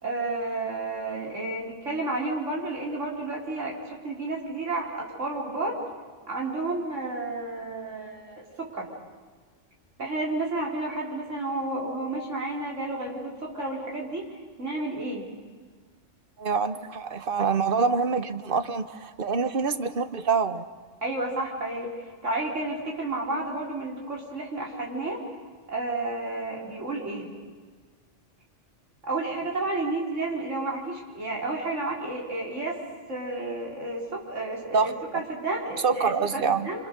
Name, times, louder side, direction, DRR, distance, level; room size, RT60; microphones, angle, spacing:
voice 1, 0.0-5.8 6.3-8.9 10.0-14.3 14.6-15.3 21.0-25.2 25.7-27.3 29.0-32.8 33.1-36.9, right 2 dB, 85° right, -3 dB, 4.7 m, -31 dB
voice 2, 16.4-20.7 34.7-34.9 35.8-36.7, right 5 dB, 50° right, 11 dB, 1.2 m, -25 dB
28.5 x 26.0 x 6.8 m, 1.5 s
omnidirectional pair, 1.2 m